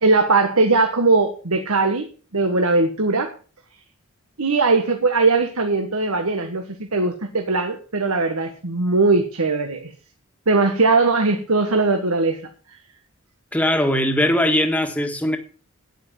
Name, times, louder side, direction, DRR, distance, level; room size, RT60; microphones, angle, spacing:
voice 1, 0.0-3.3 4.4-9.9 10.5-12.4, right 3 dB, 80° right, 1.6 m, -20 dB
voice 2, 13.5-15.4, left 1 dB, 5° left, 1.7 m, -20 dB
9.9 x 9.2 x 7.2 m
head